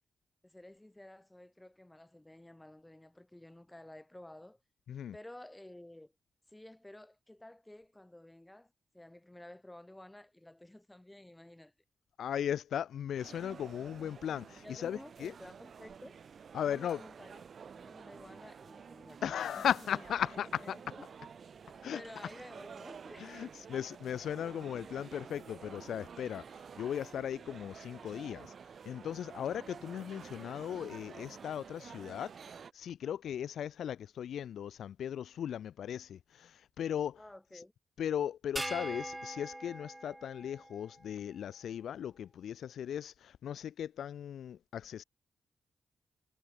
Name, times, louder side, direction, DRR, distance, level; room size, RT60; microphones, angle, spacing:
voice 1, 0.4-4.6 5.1-6.1 6.5-11.7 14.6-16.2 16.6-17.4 17.7-20.0 20.6-21.0 21.4-21.5 21.9-23.7 37.2-37.7, left 1 dB, 15° left, 4.3 m, -52 dB
voice 2, 12.2-15.3 16.5-17.0 19.2-20.8 21.8-22.0 23.2-28.5 28.9-37.2 37.5-37.6 38.0-45.0, left 9 dB, 75° left, 0.3 m, -37 dB
sound 1, 13.2-32.7, right 6 dB, 65° right, 3.4 m, -50 dB
sound 2, 38.6-41.1, right 1 dB, 15° right, 0.7 m, -42 dB
supercardioid pair, 40°, 0 cm